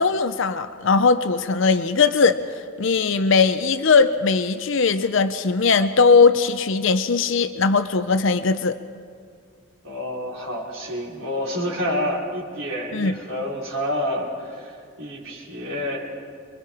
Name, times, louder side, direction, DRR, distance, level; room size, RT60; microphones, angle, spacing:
voice 1, 0.0-2.4 2.8-8.8 12.9-13.2, left 4 dB, 60° left, 10 dB, 0.6 m, -19 dB
voice 2, 9.8-16.0, equal, 65° right, -4 dB, 5.1 m, -28 dB
27.0 x 22.5 x 4.9 m, 2.2 s
head